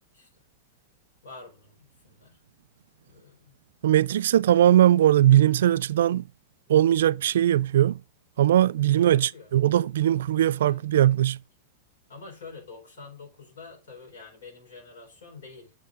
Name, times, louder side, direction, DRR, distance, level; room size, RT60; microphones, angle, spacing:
voice 1, 1.2-2.4 3.1-3.5 9.0-9.5 10.6-10.8 12.1-15.7, left 4 dB, 85° left, 4.2 m, -47 dB
voice 2, 3.8-6.3 6.7-8.0 8.4-11.4, right 12 dB, 80° right, 0.3 m, -20 dB
7.1 x 5.7 x 3.7 m
supercardioid pair, 175°, 0 cm